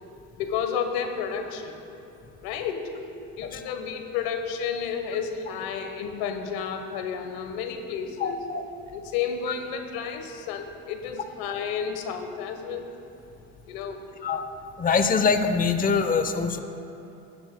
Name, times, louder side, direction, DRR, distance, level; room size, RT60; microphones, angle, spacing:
voice 1, 0.4-1.8 2.4-2.9 3.3-8.4 8.9-12.8 13.7-14.0, left 7 dB, 80° left, 6 dB, 1.1 m, -31 dB
voice 2, 8.2-8.6 14.2-14.4 14.8-16.6, left 5 dB, 25° left, 7 dB, 0.8 m, -23 dB
16.5 x 10.5 x 2.2 m, 3.0 s
supercardioid pair, 75°, 37 cm